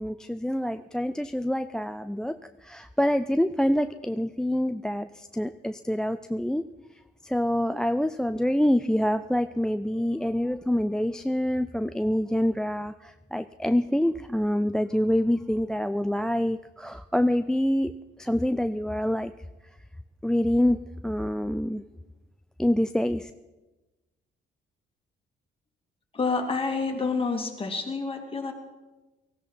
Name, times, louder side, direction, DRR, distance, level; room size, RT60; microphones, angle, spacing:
voice 1, 0.0-2.4 2.6-6.6 7.2-17.9 18.2-19.3 20.2-21.8 22.6-23.3, left 1 dB, 5° left, 12 dB, 0.4 m, -26 dB
voice 2, 26.1-28.5, left 4 dB, 25° left, 3 dB, 2.6 m, -28 dB
17.5 x 15.5 x 4.6 m, 1.1 s
cardioid pair, 90°, 20 cm